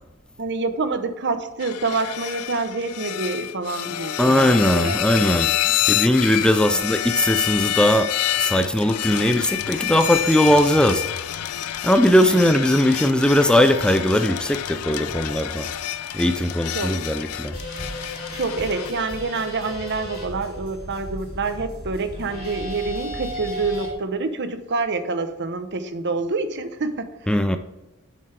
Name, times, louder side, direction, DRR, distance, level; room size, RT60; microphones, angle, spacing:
voice 1, 0.4-5.4 5.6-5.8 12.2-12.4 16.7-17.0 18.3-27.1, right 3 dB, 55° right, 0.9 m, -27 dB
sound 1, 1.6-18.9, left 12 dB, 85° left, 0.4 m, -28 dB
voice 2, 4.2-5.5 5.8-8.1 8.4-11.4 11.8-15.7 16.1-17.6 27.3-27.6, left 1 dB, 5° left, 0.4 m, -19 dB
sound 2, 17.5-23.9, equal, 40° left, 3.5 m, -35 dB
10.0 x 7.4 x 3.4 m
head